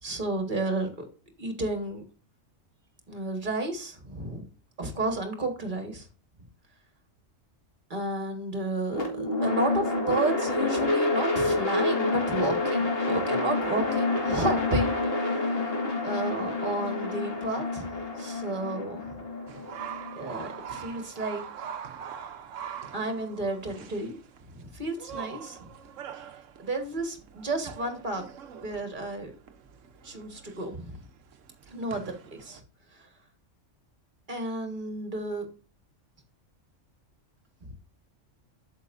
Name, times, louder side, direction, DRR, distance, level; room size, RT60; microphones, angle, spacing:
voice 1, 0.0-0.9 1.4-2.0 3.1-4.5 4.8-6.1 7.9-15.4 16.0-17.9 18.1-19.1 20.1-21.4 22.9-24.2 24.5-25.7 26.6-28.2 28.6-29.3 30.0-30.9 31.7-32.6 32.9-33.1 34.3-35.5 37.6-37.8, right 2 dB, 40° right, 5 dB, 1.7 m, -32 dB
sound 1, 8.9-21.0, left 2 dB, 50° left, 2.1 m, -28 dB
sound 2, 19.5-32.6, right 8 dB, 75° right, 1.1 m, -43 dB
8.2 x 7.0 x 2.6 m, 0.37 s
omnidirectional pair, 1.3 m